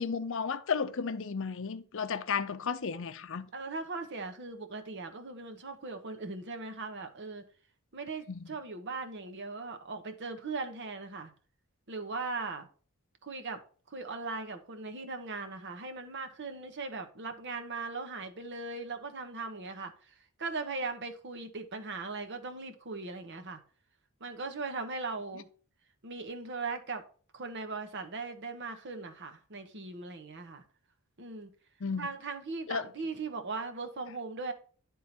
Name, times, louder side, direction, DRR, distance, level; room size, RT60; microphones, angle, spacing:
voice 1, 0.0-3.5 8.3-8.4 31.8-32.1 32.7-32.9, left 5 dB, 60° left, 0.6 m, -33 dB
voice 2, 3.5-7.4 7.9-11.3 11.9-12.7 13.2-13.6 13.9-23.6 24.2-25.5 26.0-27.0 27.3-30.6 31.2-31.5 32.0-34.5, right 3 dB, 55° right, 1.0 m, -39 dB
11.0 x 3.7 x 4.4 m
head